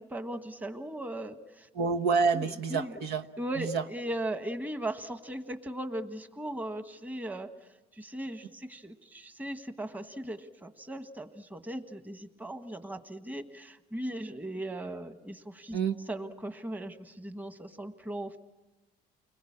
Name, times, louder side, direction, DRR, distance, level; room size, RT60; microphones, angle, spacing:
voice 1, 0.0-1.7 2.3-2.4 2.7-3.0 3.4-7.5 8.0-15.8 16.1-18.4, right 1 dB, 10° right, 8 dB, 1.4 m, -38 dB
voice 2, 1.7-3.3 3.6-3.8 15.7-16.0, right 5 dB, 75° right, 7 dB, 1.2 m, -28 dB
29.5 x 21.0 x 8.7 m, 1.1 s
cardioid pair, 110°, 17 cm